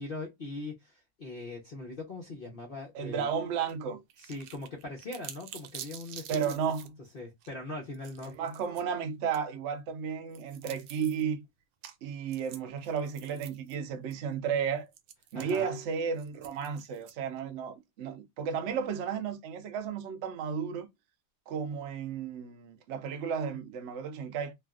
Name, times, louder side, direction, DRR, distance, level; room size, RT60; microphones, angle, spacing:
voice 1, 0.0-3.3 4.2-6.5 7.1-8.3 15.3-15.8, left 2 dB, 80° left, 0.5 m, -41 dB
voice 2, 2.9-4.0 6.3-7.0 8.2-11.4 12.0-14.9 15.3-20.9 21.5-24.5, right 7 dB, 70° right, 0.6 m, -33 dB
sound 1, 3.7-3.8 4.1-6.9 7.4-7.5 7.9-8.8 9.3-9.4 10.3-11.2 11.8-12.0 12.3-13.7 14.1-14.2 14.9-17.4, right 10 dB, 90° right, 1.3 m, -48 dB
3.3 x 2.4 x 2.3 m
omnidirectional pair, 2.0 m